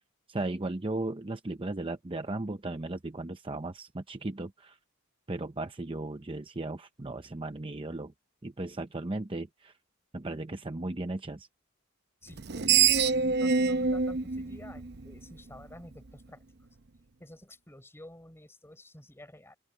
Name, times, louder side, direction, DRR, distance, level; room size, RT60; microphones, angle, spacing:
voice 1, 0.3-4.8 5.3-8.1 8.4-9.7 10.1-11.5, right 2 dB, 25° right, 0.7 m, -36 dB
voice 2, 12.2-16.4 17.2-19.6, left 1 dB, 10° left, 4.3 m, -50 dB
Screech, 12.3-15.6, right 6 dB, 50° right, 0.7 m, -26 dB
open air
head